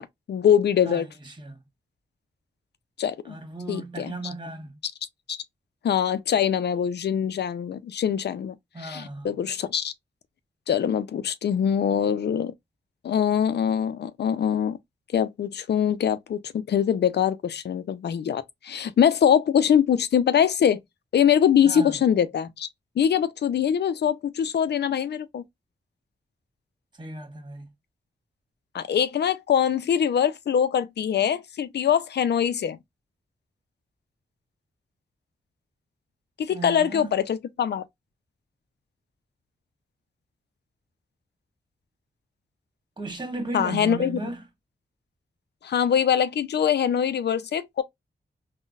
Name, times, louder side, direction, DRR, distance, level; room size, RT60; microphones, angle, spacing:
voice 1, 0.0-1.1 3.0-3.3 3.7-4.1 4.8-4.9 5.3-5.4 5.8-9.9 10.7-12.5 13.0-14.8 15.1-20.8 21.1-22.7 23.0-25.4 28.7-32.8 36.4-37.8 43.5-44.2 45.6-47.8, left 8 dB, 75° left, 0.4 m, -23 dB
voice 2, 0.9-1.6 3.2-4.7 8.7-9.3 21.6-21.9 27.0-27.7 36.5-37.2 43.0-44.4, right 2 dB, 25° right, 1.5 m, -35 dB
3.7 x 2.1 x 2.4 m
cardioid pair, 50°, 18 cm